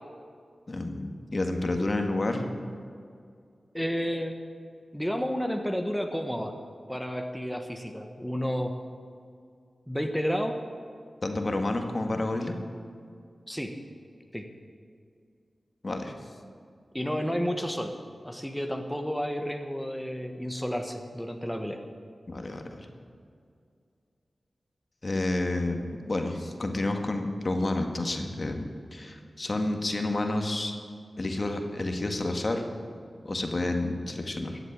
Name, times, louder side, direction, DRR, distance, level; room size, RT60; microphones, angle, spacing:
voice 1, 0.7-2.5 11.2-12.5 15.8-16.1 22.3-22.9 25.0-30.7 31.2-32.6 33.2-34.6, left 2 dB, 50° left, 4 dB, 1.8 m, -30 dB
voice 2, 3.7-4.4 4.9-6.5 6.9-8.7 9.9-10.6 13.5-13.7 14.3-14.5 16.9-17.9 18.2-21.8, equal, 5° left, 4 dB, 1.3 m, -31 dB
14.0 x 8.0 x 8.8 m, 2.3 s
cardioid pair, 40°, 0 cm